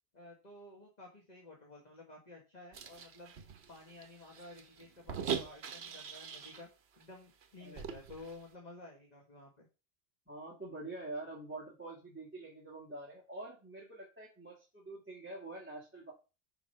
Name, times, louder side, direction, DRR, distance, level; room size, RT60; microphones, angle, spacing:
voice 1, 0.1-3.3 3.7-6.7 7.0-9.7, left 2 dB, 40° left, 0 dB, 1.6 m, -53 dB
sound 1, 2.7-6.7 7.0-7.1 7.4-8.4, right 7 dB, 70° right, 1.1 m, -42 dB
voice 2, 10.3-16.1, right 2 dB, 10° right, -3 dB, 1.8 m, -46 dB
6.3 x 4.9 x 5.6 m, 0.32 s
omnidirectional pair, 1.1 m